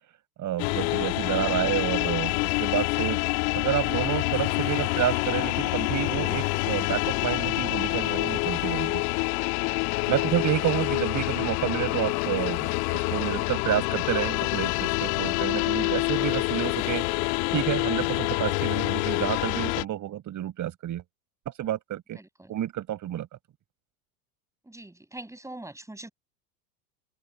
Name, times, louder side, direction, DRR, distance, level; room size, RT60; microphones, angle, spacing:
voice 1, 0.4-3.2 3.5-9.0 10.1-17.0 17.5-21.0 21.6-22.2 22.5-23.3, right 12 dB, 40° right, 6.2 m, -29 dB
sound 1, 0.6-19.8, left 29 dB, 60° left, 1.7 m, -27 dB
voice 2, 22.1-22.5 24.6-26.1, right 1 dB, 5° right, 6.8 m, -43 dB
open air
hypercardioid pair, 100°, 47 cm